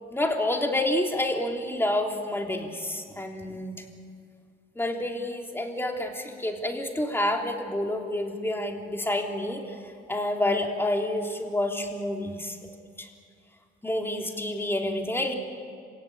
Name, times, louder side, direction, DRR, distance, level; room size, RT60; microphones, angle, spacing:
voice 1, 0.1-3.7 4.7-9.6 10.1-12.6 13.0-13.1 13.8-15.4, left 1 dB, 10° left, 2 dB, 3.2 m, -28 dB
27.0 x 17.0 x 8.8 m, 2.2 s
cardioid pair, 90°, 20 cm